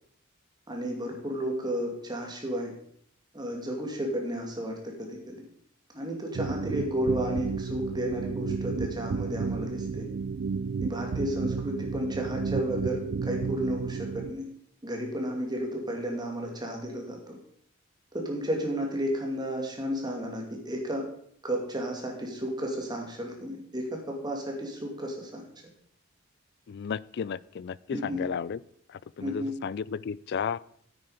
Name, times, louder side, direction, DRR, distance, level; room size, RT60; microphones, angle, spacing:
voice 1, 0.7-2.7 3.3-5.4 5.9-10.0 10.8-14.5 14.8-17.4 18.1-21.1 21.4-25.4 27.9-28.2 29.2-29.5, equal, 20° right, 1 dB, 2.4 m, -32 dB
sound 1, 6.3-14.3, right 5 dB, 55° right, 0.4 m, -32 dB
voice 2, 26.7-28.6 29.2-30.6, left 6 dB, 55° left, 21 dB, 0.3 m, -33 dB
9.9 x 8.6 x 5.0 m, 0.65 s
head